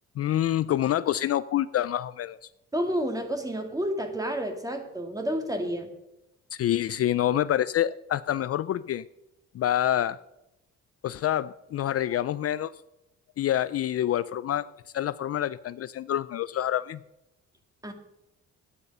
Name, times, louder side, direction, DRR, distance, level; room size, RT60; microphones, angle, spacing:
voice 1, 0.2-2.4 6.5-9.0 9.5-10.2 11.0-12.7 13.4-14.7 14.9-17.0, left 12 dB, 50° left, 15 dB, 0.4 m, -27 dB
voice 2, 2.7-5.9 17.8-17.9, equal, 10° right, 4 dB, 2.2 m, -30 dB
12.0 x 9.7 x 5.5 m, 0.89 s
cardioid pair, 90°, 30 cm